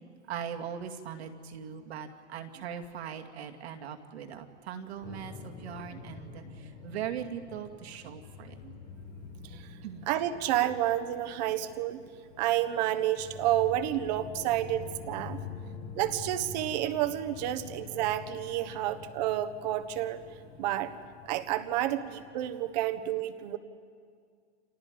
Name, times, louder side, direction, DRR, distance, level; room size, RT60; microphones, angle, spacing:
voice 1, 0.3-8.6 9.8-10.1 21.2-21.4, right 8 dB, 60° right, 4 dB, 2.4 m, -40 dB
sound 1, 5.0-23.0, left 5 dB, 45° left, 3.3 m, -47 dB
voice 2, 10.1-12.0 12.4-15.4 16.0-20.2 20.6-20.9 21.3-23.6, right 13 dB, 35° right, 10 dB, 1.3 m, -30 dB
30.0 x 27.0 x 5.2 m, 2.1 s
supercardioid pair, 165°, 35 cm